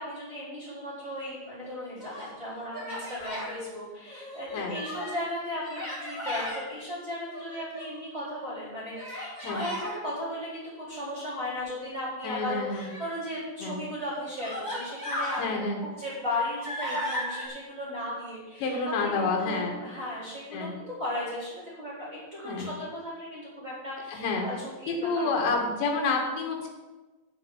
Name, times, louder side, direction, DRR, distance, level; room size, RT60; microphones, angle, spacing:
voice 1, 0.0-25.7, left 1 dB, 20° right, -8 dB, 3.6 m, -36 dB
Human voice, 1.7-2.3 2.7-3.5 4.1-5.2 5.6-6.6 7.3-8.0 8.9-9.9 12.2-13.1 13.8-13.9 14.4-15.5 15.9-17.5, left 1 dB, 15° left, 1.5 m, -36 dB
voice 2, 12.2-12.9 13.6-13.8 15.4-15.8 18.6-19.8 20.5-20.7 22.5-22.7 24.2-24.5 24.9-26.7, left 3 dB, 70° left, 1 dB, 3.9 m, -29 dB
7.6 x 7.0 x 8.2 m, 1.2 s
omnidirectional pair, 5.4 m